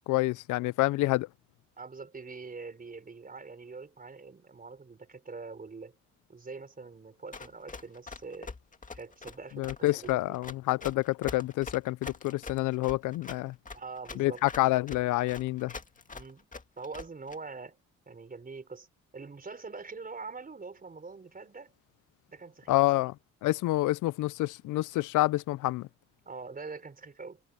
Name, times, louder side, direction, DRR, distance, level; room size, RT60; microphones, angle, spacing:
voice 1, 0.1-1.3 9.6-13.5 14.2-15.7 22.7-23.1 23.4-25.9, left 18 dB, 80° left, 0.5 m, -28 dB
voice 2, 1.8-5.9 6.3-8.5 8.9-10.4 13.7-14.4 16.1-16.5 16.8-17.8 18.1-18.9 19.1-21.7 22.3-23.0 26.2-27.4, right 4 dB, 30° right, 4.6 m, -44 dB
Run, 7.3-17.4, left 4 dB, 25° left, 2.0 m, -43 dB
cardioid pair, 90°, 30 cm